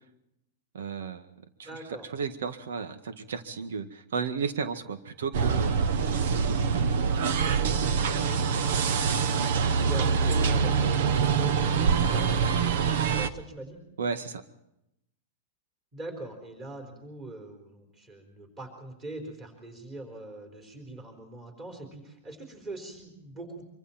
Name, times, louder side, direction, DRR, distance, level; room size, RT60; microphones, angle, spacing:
voice 1, 0.7-1.3 1.6-1.7 2.1-5.7 6.0-6.6 14.0-14.4, right 5 dB, 90° right, 9 dB, 1.8 m, -33 dB
voice 2, 1.6-2.1 9.4-13.8 15.9-23.6, right 2 dB, 15° right, 5 dB, 4.1 m, -43 dB
sound 1, 5.3-13.3, right 6 dB, 55° right, 1.1 m, -25 dB
25.0 x 25.0 x 4.5 m, 0.83 s
supercardioid pair, 180°, 0 cm